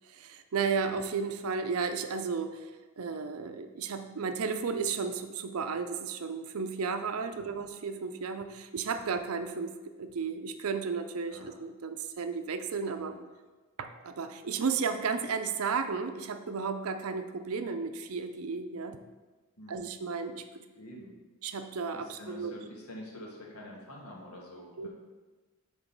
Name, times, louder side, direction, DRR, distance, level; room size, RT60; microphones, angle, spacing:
voice 1, 0.1-2.7 3.0-9.7 10.0-13.1 13.8-19.0 19.7-20.4 21.4-22.5 24.8-24.9, right 5 dB, 75° right, 8 dB, 0.5 m, -33 dB
voice 2, 20.7-21.1 21.9-24.9, left 1 dB, 85° left, -2 dB, 1.6 m, -47 dB
6.0 x 3.9 x 5.3 m, 1.3 s
head